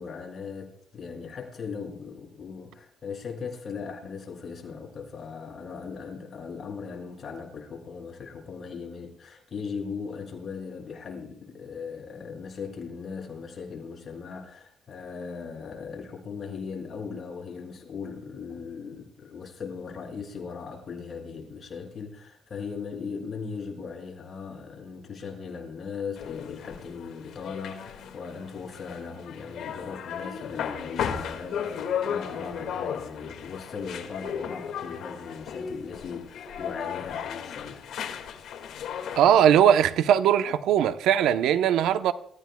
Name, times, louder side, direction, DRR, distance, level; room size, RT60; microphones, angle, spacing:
voice 1, 0.0-37.9, left 5 dB, 50° left, 6.7 m, -38 dB
sound 1, 26.2-39.4, left 8 dB, 80° left, 2.0 m, -35 dB
voice 2, 39.2-42.1, right 9 dB, 85° right, 0.8 m, -20 dB
27.5 x 15.5 x 2.3 m
cardioid pair, 90°, 0 cm